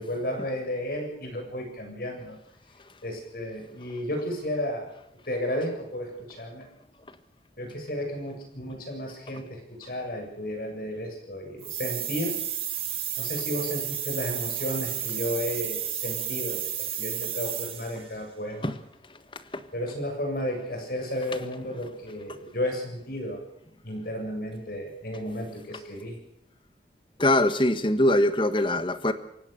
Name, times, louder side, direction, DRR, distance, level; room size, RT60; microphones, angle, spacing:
voice 1, 0.0-2.4 3.0-4.9 5.3-6.7 7.6-12.4 13.2-18.7 19.7-23.4 23.8-26.2, left 1 dB, 55° left, 3 dB, 7.2 m, -33 dB
sound 1, 11.6-18.1, right 10 dB, 35° right, 2.9 m, -32 dB
voice 2, 27.2-29.1, left 1 dB, 30° left, 11 dB, 1.5 m, -23 dB
28.0 x 16.5 x 6.7 m, 0.77 s
head